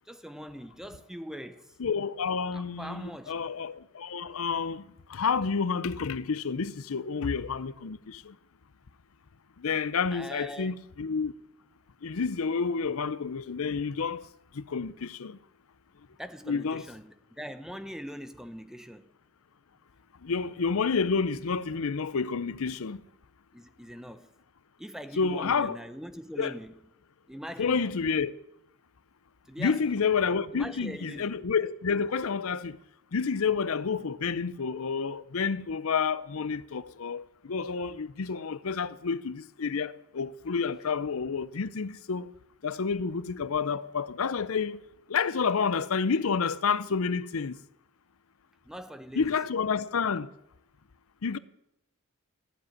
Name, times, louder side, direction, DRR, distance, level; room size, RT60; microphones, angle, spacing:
voice 1, 0.1-1.7 2.5-3.3 10.1-10.8 16.2-19.1 23.5-24.3 24.8-26.8 27.3-27.9 29.5-30.0 30.5-31.3 48.6-49.4, equal, ahead, 0.8 m, -42 dB
voice 2, 1.8-4.8 5.1-8.3 9.6-11.3 12.0-14.3 14.5-15.4 16.5-16.9 20.2-23.0 25.2-25.8 26.4-26.5 27.6-28.3 29.6-32.8 33.1-42.3 42.6-44.8 45.1-47.6 49.1-50.3 51.2-51.4, left 5 dB, 75° left, 0.6 m, -29 dB
15.0 x 7.8 x 9.7 m
head